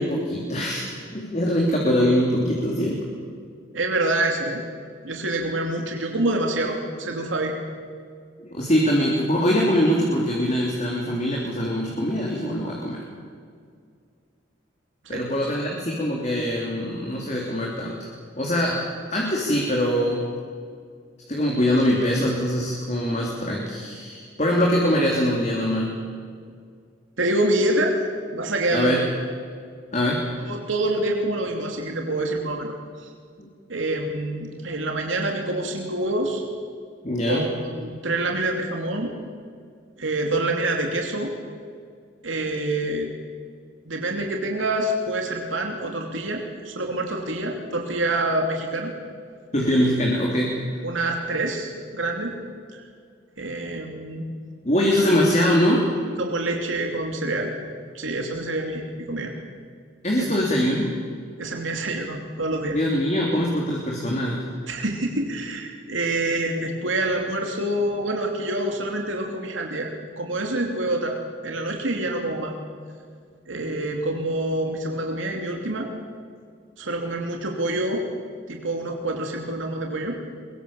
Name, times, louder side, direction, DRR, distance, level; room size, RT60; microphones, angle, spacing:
voice 1, 0.0-3.0 8.4-13.0 15.1-18.1 18.4-20.3 21.3-26.0 28.7-29.0 29.9-30.3 33.4-33.5 37.0-37.5 49.5-50.7 54.6-55.9 60.0-60.9 62.7-64.5, equal, 35° left, -2 dB, 3.3 m, -23 dB
voice 2, 3.7-4.7 5.0-7.5 15.0-15.2 27.2-28.0 28.3-29.0 30.1-32.7 33.0-33.1 33.7-36.4 37.2-39.1 40.0-41.3 42.2-43.1 43.9-48.9 50.8-52.3 52.7-52.8 53.4-54.3 56.2-57.5 57.9-59.3 60.2-60.4 61.4-62.8 64.7-71.2 71.4-72.5 73.5-75.9 76.8-78.0 78.5-80.2, right 1 dB, 85° right, 2 dB, 2.8 m, -26 dB
23.0 x 22.5 x 7.1 m, 2.1 s
head